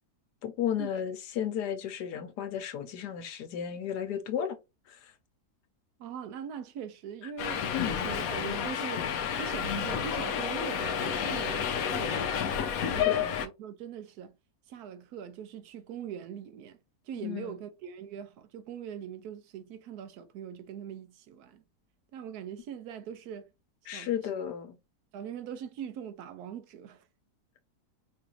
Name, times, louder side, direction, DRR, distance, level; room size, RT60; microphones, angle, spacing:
voice 1, 0.4-4.6 4.9-5.1 7.7-8.2 13.0-13.3 17.2-17.6 23.9-24.8, left 9 dB, 90° left, 1.3 m, -34 dB
voice 2, 6.0-9.1 9.4-14.3 14.7-16.8 17.0-21.6 22.1-23.5 23.8-24.1 25.1-27.1, right 8 dB, 80° right, 1.1 m, -42 dB
Subway metro underground, 7.4-13.5, left 8 dB, 70° left, 1.0 m, -30 dB
5.0 x 2.5 x 2.9 m
omnidirectional pair, 1.7 m